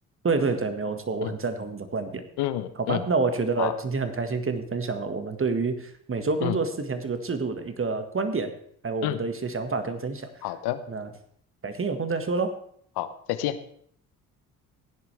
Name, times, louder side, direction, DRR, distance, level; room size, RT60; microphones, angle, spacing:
voice 1, 0.2-2.2 2.8-8.5 8.8-10.3 10.9-11.1 11.6-12.5, right 4 dB, 30° right, 8 dB, 1.7 m, -28 dB
voice 2, 2.4-3.0 3.6-3.7 6.4-6.6 9.0-9.2 10.4-10.8 13.0-13.6, left 14 dB, 65° left, 13 dB, 1.0 m, -28 dB
16.0 x 10.5 x 3.4 m, 0.63 s
hypercardioid pair, 50°, 43 cm